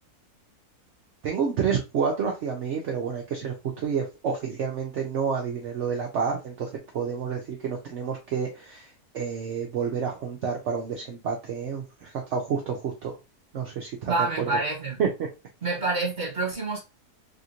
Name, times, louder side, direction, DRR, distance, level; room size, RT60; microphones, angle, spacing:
voice 1, 1.2-6.7 6.9-13.1 13.5-14.5 15.0-15.1, right 6 dB, 65° right, 0.8 m, -29 dB
voice 2, 14.1-15.0 15.6-16.8, right 3 dB, 45° right, 1.4 m, -27 dB
3.5 x 2.5 x 2.7 m
omnidirectional pair, 1.7 m